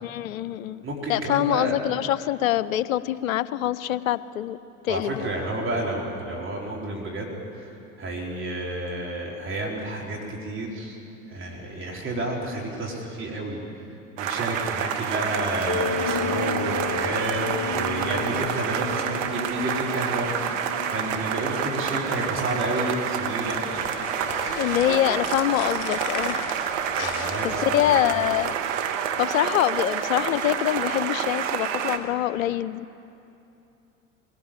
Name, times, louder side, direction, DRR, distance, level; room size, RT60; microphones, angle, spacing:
voice 1, 0.0-0.8 1.1-4.6 4.8-5.3 16.0-16.5 24.5-26.5 27.0-27.1 27.4-28.6 29.2-32.9, left 13 dB, 75° left, 17 dB, 0.7 m, -25 dB
voice 2, 0.8-1.8 4.9-7.3 7.6-11.0 11.3-13.6 14.2-23.7 27.0-28.0, right 1 dB, 30° right, -2 dB, 3.9 m, -30 dB
sound 1, 14.2-32.0, right 8 dB, 65° right, 1.4 m, -28 dB
sound 2, 15.7-24.0, left 5 dB, 25° left, 1.5 m, -34 dB
sound 3, 23.5-28.5, left 9 dB, 55° left, 1.5 m, -38 dB
21.0 x 17.5 x 7.4 m, 2.8 s
figure-of-eight pair, 75°, 41 cm